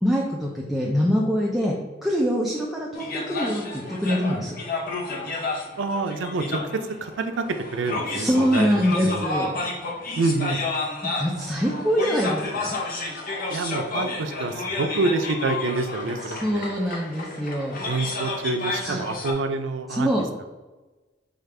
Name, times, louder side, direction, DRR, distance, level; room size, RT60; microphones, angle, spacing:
voice 1, 0.0-1.7 2.0-4.5 8.1-9.5 11.0-12.8 16.4-17.8 18.8-19.0 20.0-20.2, equal, ahead, -4 dB, 0.4 m, -24 dB
sound 1, 2.9-19.3, left 3 dB, 50° left, 0.7 m, -31 dB
voice 2, 5.8-7.5 7.7-8.7 9.0-9.3 10.2-10.6 13.5-16.7 17.8-20.1, right 3 dB, 90° right, 7 dB, 0.4 m, -27 dB
5.0 x 2.4 x 3.3 m, 1.2 s
head